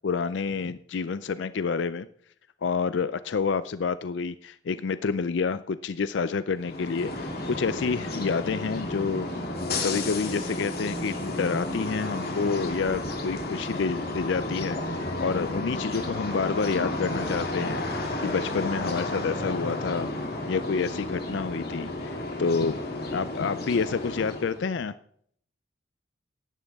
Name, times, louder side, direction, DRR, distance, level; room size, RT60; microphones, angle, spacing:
voice 1, 0.0-2.1 2.6-9.3 9.8-20.1 20.5-22.8 23.1-24.9, left 5 dB, 65° left, 14 dB, 0.4 m, -28 dB
sound 1, 6.5-24.6, left 2 dB, 50° left, 2.7 m, -32 dB
15.5 x 11.0 x 3.5 m, 0.65 s
head